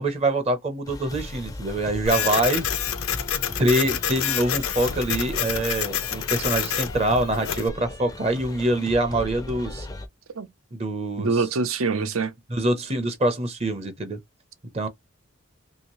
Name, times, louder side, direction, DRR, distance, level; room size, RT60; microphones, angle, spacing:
voice 1, 0.0-2.6 3.6-9.9 10.7-11.3 12.5-14.2 14.7-14.9, right 1 dB, 30° right, 0.6 m, -24 dB
sound 1, 0.9-10.1, left 1 dB, 15° left, 0.4 m, -37 dB
Printer, 2.1-7.7, left 10 dB, 85° left, 0.6 m, -28 dB
voice 2, 11.2-12.3, right 4 dB, 80° right, 0.6 m, -24 dB
2.8 x 2.8 x 2.9 m
head